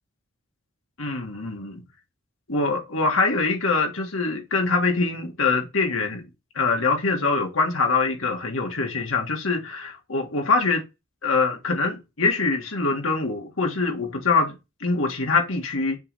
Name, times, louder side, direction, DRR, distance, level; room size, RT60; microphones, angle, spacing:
voice 1, 1.0-1.8 2.5-6.2 6.6-10.8 11.2-14.6 14.8-16.0, left 3 dB, 80° left, 1.8 m, -24 dB
7.0 x 3.2 x 4.1 m
head